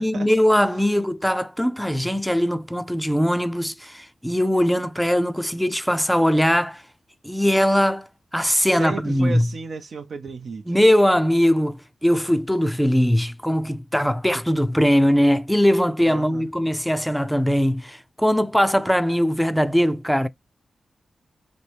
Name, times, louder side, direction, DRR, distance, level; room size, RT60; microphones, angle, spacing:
voice 1, 0.0-6.8 7.2-9.5 10.7-20.3, equal, ahead, 0.5 m, -20 dB
voice 2, 8.6-10.6 16.0-16.5, right 4 dB, 70° right, 0.6 m, -34 dB
4.2 x 2.6 x 3.3 m
wide cardioid pair, 105°, 0 cm